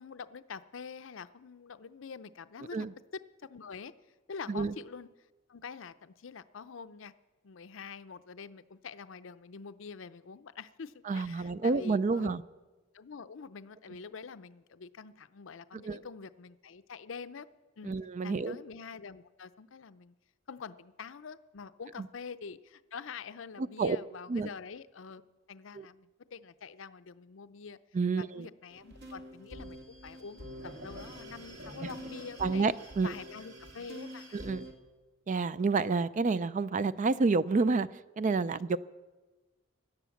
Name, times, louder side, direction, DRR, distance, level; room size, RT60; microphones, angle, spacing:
voice 1, 0.0-3.9 4.3-5.1 5.5-7.1 7.4-12.3 12.9-17.5 17.8-17.9 18.2-20.1 20.5-25.2 25.5-27.8 28.2-32.7 33.0-34.4 38.5-38.6, left 5 dB, 70° left, 12 dB, 0.6 m, -46 dB
voice 2, 11.1-12.4 15.8-16.0 17.8-18.6 23.6-24.0 24.3-24.5 25.7-25.9 27.9-28.5 32.4-33.1 34.3-34.6 35.3-38.8, right 4 dB, 40° right, 16 dB, 0.4 m, -29 dB
sound 1, 28.7-34.7, equal, 55° right, 2.2 m, -46 dB
16.5 x 11.0 x 7.1 m, 1.2 s
head